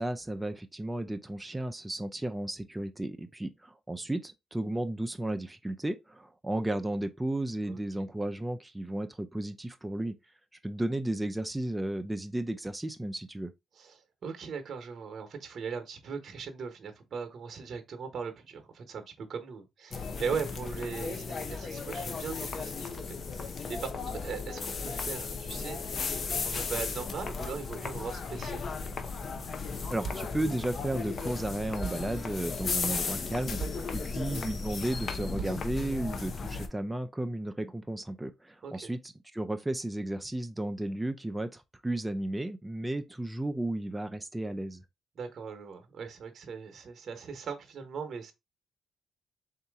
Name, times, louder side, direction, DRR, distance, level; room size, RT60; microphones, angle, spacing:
voice 1, 0.0-10.1 10.6-13.5 29.9-44.8, right 1 dB, 10° right, 0.5 m, -34 dB
voice 2, 13.8-26.0 26.3-28.7 33.7-33.9 38.6-38.9 45.2-48.3, right 6 dB, 50° right, 1.0 m, -39 dB
sound 1, 19.9-36.7, left 4 dB, 45° left, 0.7 m, -35 dB
sound 2, 29.4-29.7 30.0-34.5 35.0-35.9, right 5 dB, 30° right, 1.0 m, -43 dB
4.0 x 2.8 x 3.5 m
cardioid pair, 90°, 0 cm